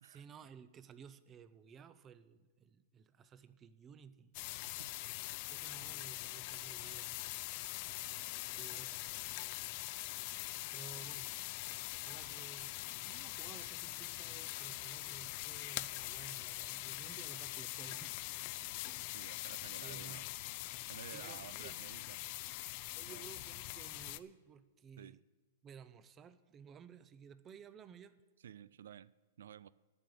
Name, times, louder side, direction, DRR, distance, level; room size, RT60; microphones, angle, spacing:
voice 1, 0.0-4.3 5.5-7.1 8.5-9.0 10.7-11.4 12.0-18.2 18.6-18.8 19.1-19.3 19.8-20.3 20.8-21.8 22.9-25.2 25.6-28.2, right 7 dB, 20° right, 0.6 m, -56 dB
sound 1, 4.3-24.2, left 18 dB, 40° left, 0.4 m, -43 dB
voice 2, 19.1-20.3 20.9-22.2 23.1-23.2 25.0-25.2 28.4-29.1 29.4-29.7, right 9 dB, 75° right, 0.3 m, -52 dB
11.0 x 8.7 x 7.8 m
hypercardioid pair, 155°, 0 cm